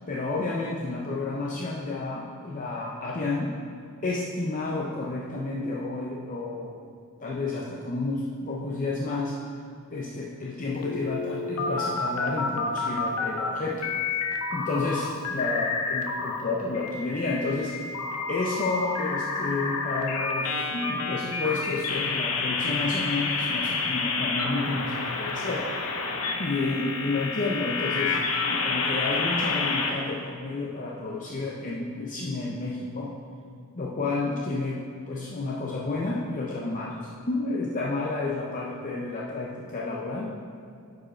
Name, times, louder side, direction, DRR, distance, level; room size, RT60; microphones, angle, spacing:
voice 1, 0.1-3.5 4.0-6.7 7.2-9.4 9.9-13.9 14.5-17.7 18.3-25.7 26.4-33.1 33.7-40.3, left 3 dB, 35° left, -4 dB, 0.6 m, -30 dB
sound 1, 10.8-13.5 13.8-16.4 16.7-29.9, left 4 dB, 70° left, 0.8 m, -29 dB
9.6 x 4.9 x 4.4 m, 2.4 s
head